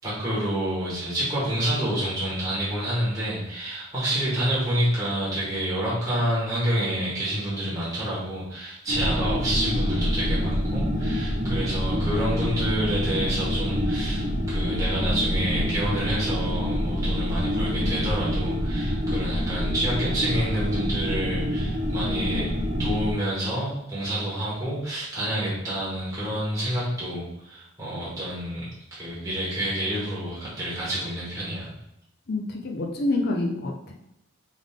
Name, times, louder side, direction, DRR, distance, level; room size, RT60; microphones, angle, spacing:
voice 1, 0.0-22.5 22.8-31.7, right 1 dB, 15° right, -9 dB, 1.5 m, -28 dB
sound 1, 8.9-23.1, equal, 35° right, 0.7 m, -26 dB
voice 2, 32.3-33.9, left 2 dB, 45° left, 0 dB, 0.5 m, -27 dB
3.6 x 3.6 x 3.6 m, 0.85 s
head